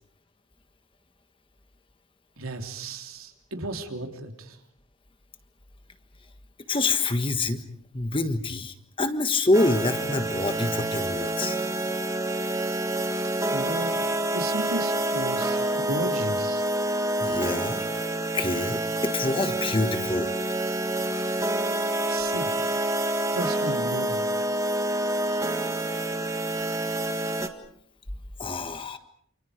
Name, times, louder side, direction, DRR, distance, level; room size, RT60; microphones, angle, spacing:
voice 1, 2.4-4.6 13.5-14.0 14.3-16.6 22.1-22.5 23.3-24.2, right 2 dB, 80° right, 4 dB, 3.4 m, -34 dB
voice 2, 6.7-7.6 7.9-11.6 17.2-17.9 18.3-20.3 28.4-29.0, left 2 dB, 25° left, 9 dB, 1.5 m, -26 dB
sound 1, 9.5-27.5, right 1 dB, 15° right, 1.7 m, -27 dB
29.0 x 28.5 x 5.1 m, 0.66 s
head